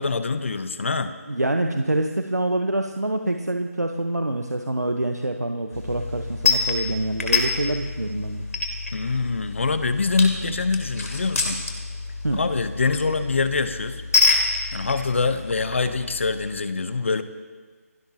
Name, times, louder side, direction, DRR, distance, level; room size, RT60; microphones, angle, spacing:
voice 1, 0.0-1.2 8.9-11.6 12.3-14.0 14.7-17.2, left 4 dB, 50° left, 11 dB, 1.0 m, -24 dB
voice 2, 1.3-8.4 12.2-12.4, right 1 dB, 90° right, 5 dB, 1.1 m, -26 dB
sound 1, 5.7-16.5, left 4 dB, 65° left, 3.1 m, -27 dB
28.5 x 13.0 x 2.9 m, 1.4 s
figure-of-eight pair, 160°, 9 cm